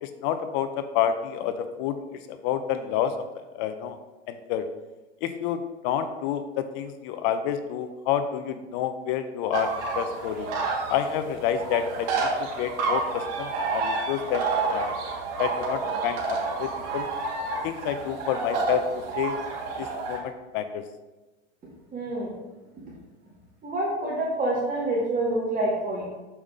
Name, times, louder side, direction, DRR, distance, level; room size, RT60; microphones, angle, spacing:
voice 1, 0.0-2.0 2.3-4.0 4.3-4.7 5.2-10.5 10.9-12.3 12.6-14.9 15.4-17.1 17.6-18.8 19.2-19.3 19.8-20.8, left 9 dB, 45° left, 9 dB, 0.7 m, -29 dB
sound 1, 9.5-20.2, right 4 dB, 40° right, 1.9 m, -29 dB
voice 2, 21.9-22.4 23.6-26.0, right 1 dB, 25° right, -5 dB, 2.1 m, -27 dB
7.0 x 5.5 x 3.7 m, 1.1 s
hypercardioid pair, 120°, 36 cm